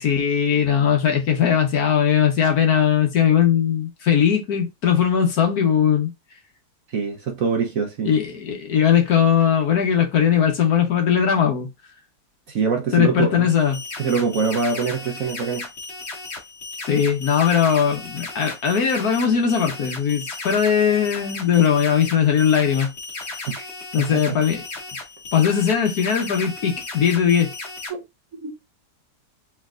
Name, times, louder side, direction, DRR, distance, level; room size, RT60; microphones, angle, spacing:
voice 1, 0.0-6.1 8.0-11.7 12.9-13.8 16.8-22.9 23.9-24.6 25.3-27.5, left 8 dB, 60° left, 1.3 m, -19 dB
voice 2, 6.9-8.1 12.5-13.5 14.0-15.7 23.5-23.7 24.0-24.2 27.9-28.0 28.3-28.5, right 5 dB, 55° right, 1.0 m, -24 dB
sound 1, 13.5-27.9, left 3 dB, 40° left, 1.2 m, -35 dB
4.4 x 3.5 x 2.4 m
omnidirectional pair, 2.0 m